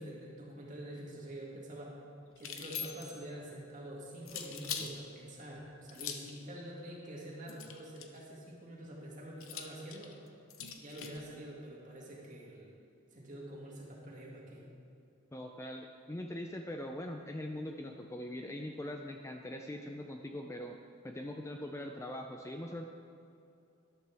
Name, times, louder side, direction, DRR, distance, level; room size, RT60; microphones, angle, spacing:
voice 1, 0.0-1.9 2.4-10.2 10.8-12.7 13.1-14.7, right 1 dB, 35° right, -4 dB, 2.3 m, -46 dB
sound 1, 2.4-3.3 4.3-4.9 5.9-6.4 7.5-8.2 9.4-11.2, left 7 dB, 65° left, 0.9 m, -42 dB
voice 2, 15.3-20.8 21.0-22.8, left 1 dB, 15° left, 3 dB, 0.4 m, -42 dB
13.0 x 12.0 x 3.5 m, 2.6 s
head